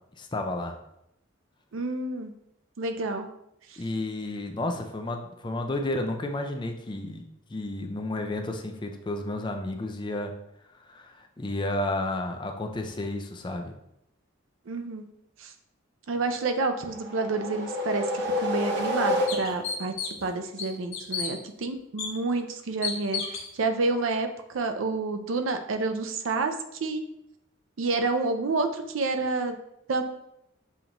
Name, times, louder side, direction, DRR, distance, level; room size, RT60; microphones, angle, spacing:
voice 1, 0.2-0.7 3.8-7.2 7.5-10.3 10.8-13.7, left 2 dB, 25° left, 4 dB, 0.4 m, -32 dB
voice 2, 1.7-2.3 2.8-3.3 3.7-3.8 14.7-15.1 15.4-15.5 16.1-19.9 20.2-27.0 27.8-29.6 29.9-30.0, right 3 dB, 80° right, 7 dB, 0.5 m, -29 dB
sound 1, 16.7-19.8, left 1 dB, 55° right, 0.8 m, -29 dB
sound 2, 18.2-18.3 18.8-18.9 19.3-20.3 20.6-21.3 22.0-22.1 22.8-23.5, left 6 dB, 90° left, 1.1 m, -32 dB
7.0 x 2.6 x 2.9 m, 0.81 s
head